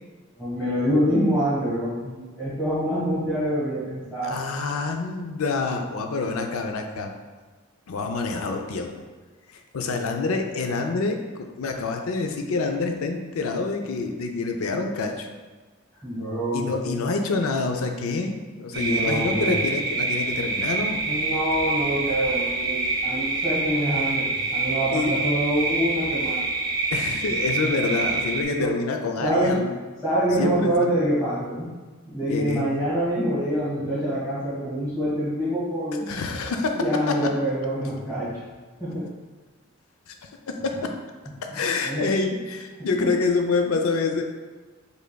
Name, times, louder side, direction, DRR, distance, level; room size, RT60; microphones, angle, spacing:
voice 1, 0.4-4.4 16.0-17.0 18.7-19.5 21.0-26.4 28.6-28.7 29.2-29.6 30.0-31.7 32.0-36.2 36.7-38.4 38.8-39.1 41.2-42.1 42.8-43.1, equal, 10° left, -11 dB, 1.4 m, -26 dB
voice 2, 4.2-7.1 7.9-8.9 9.5-11.2 11.6-15.3 16.5-21.1 24.9-25.1 26.9-29.7 30.4-30.9 32.3-32.6 36.1-36.8 37.1-37.3 40.1-40.2 40.5-40.9 41.4-44.2, left 3 dB, 80° left, 4 dB, 0.5 m, -27 dB
sound 1, 18.7-28.4, right 3 dB, 20° right, 0.4 m, -26 dB
5.1 x 3.3 x 2.3 m, 1.4 s
head